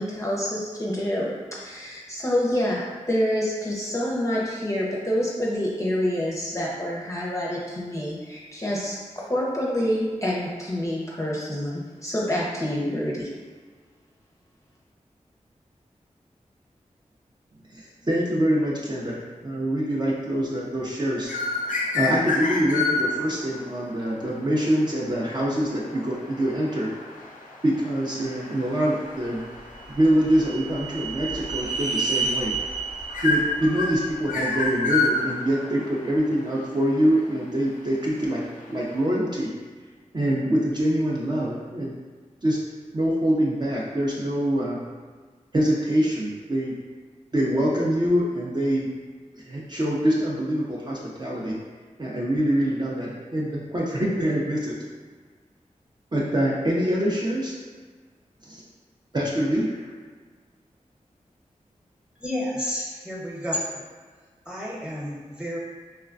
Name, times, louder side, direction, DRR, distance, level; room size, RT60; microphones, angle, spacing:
voice 1, 0.0-13.3, equal, 25° left, -5 dB, 0.5 m, -27 dB
voice 2, 17.7-21.3 21.9-26.9 27.6-29.4 29.9-32.5 33.2-39.5 40.1-42.0 42.4-42.6 42.9-44.8 45.5-46.7 47.3-48.9 49.3-51.6 52.0-54.7 56.1-57.5 58.4-58.6 59.1-59.8, equal, 35° right, -5 dB, 0.5 m, -25 dB
sound 1, 21.2-39.0, left 3 dB, 85° left, 0.4 m, -31 dB
sound 2, 29.5-34.7, right 4 dB, 75° right, 0.9 m, -31 dB
voice 3, 62.2-63.8 64.5-65.6, equal, 5° right, -5 dB, 0.9 m, -31 dB
3.2 x 2.1 x 2.4 m, 1.5 s
cardioid pair, 40°, 13 cm